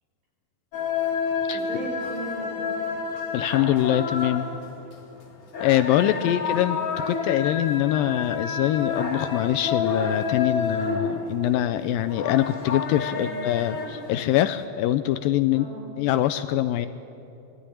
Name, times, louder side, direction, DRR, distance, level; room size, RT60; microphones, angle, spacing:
sound 1, 0.7-14.7, left 5 dB, 45° left, 2.4 m, -30 dB
voice 1, 1.5-2.9 6.0-6.8 13.1-13.4 15.5-15.9, right 1 dB, 70° right, -3 dB, 7.7 m, -38 dB
voice 2, 3.3-4.5 5.6-6.8 7.1-15.7 16.0-16.9, left 13 dB, 80° left, 11 dB, 2.2 m, -23 dB
22.0 x 14.5 x 9.9 m, 2.9 s
omnidirectional pair, 4.3 m